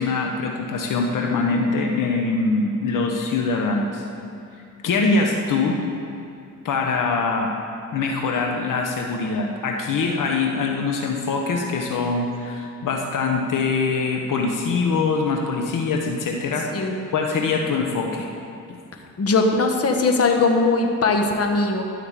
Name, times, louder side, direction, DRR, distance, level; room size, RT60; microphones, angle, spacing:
voice 1, 0.0-4.0 4.8-5.8 6.6-7.5 7.9-18.3 18.7-18.8, left 4 dB, 70° left, 2 dB, 1.2 m, -23 dB
voice 2, 19.2-21.8, left 3 dB, 45° left, 3 dB, 1.3 m, -20 dB
13.0 x 5.8 x 7.4 m, 2.5 s
cardioid pair, 85°, 32 cm